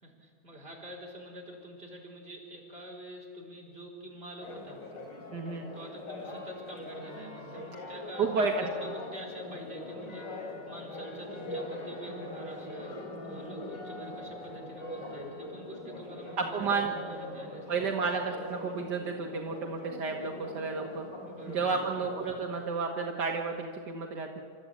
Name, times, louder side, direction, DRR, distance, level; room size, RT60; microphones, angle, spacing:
voice 1, 0.0-4.8 5.7-17.8 21.3-22.0, right 1 dB, 35° right, -3 dB, 4.4 m, -46 dB
Church bell, 4.4-22.7, left 2 dB, 85° left, 4.1 m, -42 dB
voice 2, 5.3-5.7 8.2-8.9 16.4-16.9 17.7-21.1 21.5-24.4, right 4 dB, 75° right, 2 dB, 2.0 m, -31 dB
29.0 x 13.0 x 8.5 m, 2.2 s
omnidirectional pair, 1.9 m